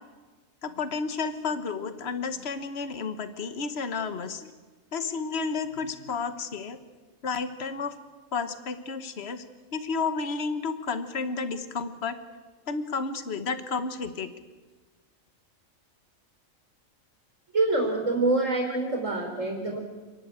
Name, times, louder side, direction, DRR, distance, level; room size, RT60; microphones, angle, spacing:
voice 1, 0.6-4.5 4.9-6.8 7.2-7.9 8.3-9.4 9.7-12.2 12.7-14.3, left 4 dB, 55° left, 11 dB, 1.5 m, -31 dB
voice 2, 17.5-19.8, right 2 dB, 70° right, 0 dB, 4.3 m, -26 dB
28.5 x 11.0 x 9.0 m, 1.3 s
omnidirectional pair, 1.4 m